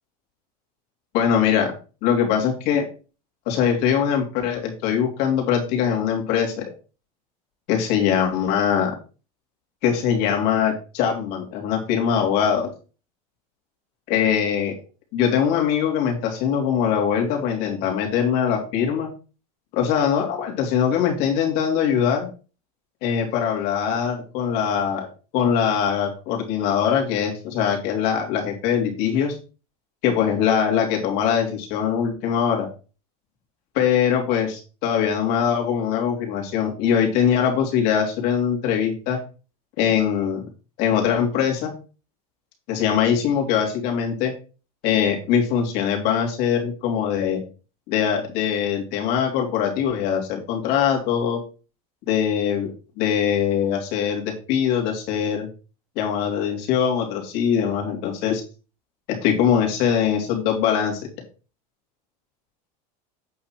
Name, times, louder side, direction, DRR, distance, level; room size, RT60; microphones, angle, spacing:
voice 1, 1.1-1.7 2.0-2.9 3.5-6.6 7.7-8.9 9.8-12.7 14.1-14.7 15.1-19.1 19.7-22.3 23.0-25.1 25.3-29.4 30.0-32.7 33.7-39.2 39.8-40.4 40.8-41.7 42.7-44.3 44.8-47.4 47.9-51.4 52.1-52.7 53.0-55.5 55.9-58.4 59.2-61.1, left 8 dB, 55° left, 1 dB, 3.2 m, -22 dB
8.6 x 5.8 x 4.5 m, 0.35 s
supercardioid pair, 145°, 20 cm